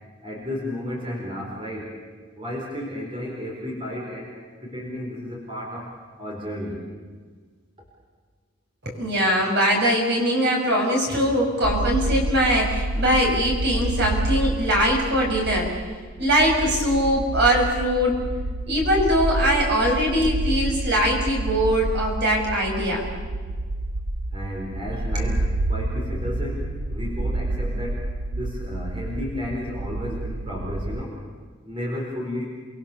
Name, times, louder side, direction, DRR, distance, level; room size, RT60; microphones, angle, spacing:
voice 1, 0.2-2.0 2.4-4.3 4.6-6.9 24.3-31.2 31.6-32.5, left 1 dB, 25° right, -2 dB, 4.5 m, -33 dB
voice 2, 8.8-15.8 16.2-18.2 18.7-23.1, equal, 50° right, 0 dB, 5.8 m, -21 dB
Bass Rumble In The Distance, 11.6-31.0, right 2 dB, 90° right, 0.8 m, -28 dB
29.5 x 22.0 x 6.9 m, 1.5 s
head